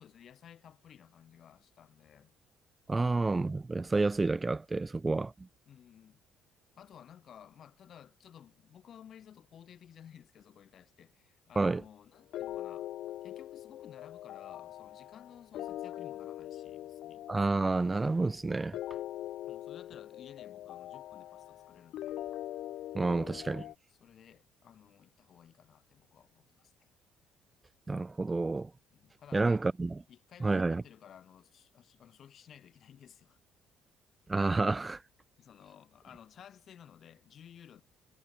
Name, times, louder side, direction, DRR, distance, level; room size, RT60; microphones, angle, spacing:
voice 1, 0.0-2.3 5.6-6.2 6.8-12.9 13.2-17.3 19.5-22.2 23.9-26.9 28.9-29.7 30.1-33.4 35.4-37.8, left 9 dB, 50° left, 4.8 m, -55 dB
voice 2, 2.9-5.3 11.6-11.8 17.3-18.8 22.9-23.7 27.9-28.7 29.3-29.9 30.4-30.8 34.3-35.0, right 3 dB, 15° right, 0.3 m, -29 dB
sound 1, 12.3-23.7, left 13 dB, 65° left, 1.0 m, -42 dB
cardioid pair, 130°, 0 cm